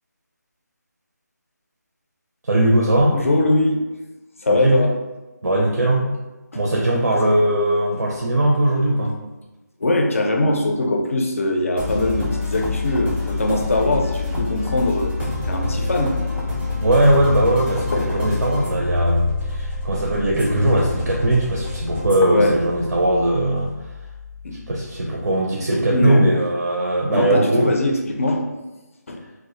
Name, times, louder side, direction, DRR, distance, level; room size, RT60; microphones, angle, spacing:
voice 1, 2.4-3.2 4.5-4.8 5.4-6.1 6.5-9.2 16.8-23.7 24.7-27.7, right 1 dB, 70° right, -3 dB, 0.5 m, -19 dB
voice 2, 3.1-3.8 4.4-4.9 6.5-6.6 6.9-7.2 9.8-16.1 17.9-18.0 22.2-22.6 24.4-24.6 25.9-26.3 27.1-28.4 29.1-29.2, left 2 dB, 50° left, 2 dB, 0.4 m, -21 dB
sound 1, 11.8-25.2, left 3 dB, 10° right, 0.5 m, -27 dB
2.1 x 2.0 x 2.8 m, 1.1 s
figure-of-eight pair, 170°, 10 cm